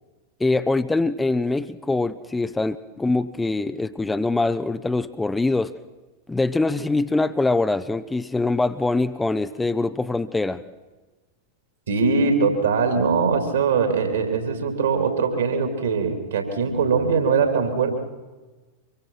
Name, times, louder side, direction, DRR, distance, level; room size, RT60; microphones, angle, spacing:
voice 1, 0.4-5.7 6.3-10.6, left 2 dB, 10° left, 11 dB, 0.7 m, -23 dB
voice 2, 11.9-17.9, right 5 dB, 65° right, 5 dB, 3.6 m, -21 dB
25.0 x 23.5 x 5.9 m, 1.2 s
figure-of-eight pair, 90°, 0 cm